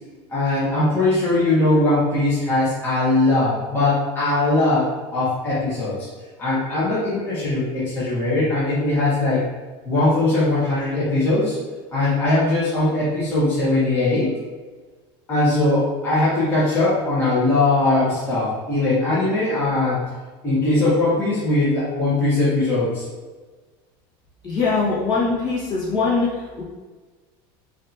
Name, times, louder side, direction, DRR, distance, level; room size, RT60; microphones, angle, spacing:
voice 1, 0.3-6.1 6.4-9.4 9.8-11.5 11.9-14.3 15.3-20.0 20.4-23.0, left 2 dB, 20° left, -11 dB, 1.2 m, -20 dB
voice 2, 24.4-26.6, left 4 dB, 35° left, -7 dB, 1.4 m, -22 dB
5.0 x 2.7 x 2.8 m, 1.3 s
cardioid pair, 160°, 12 cm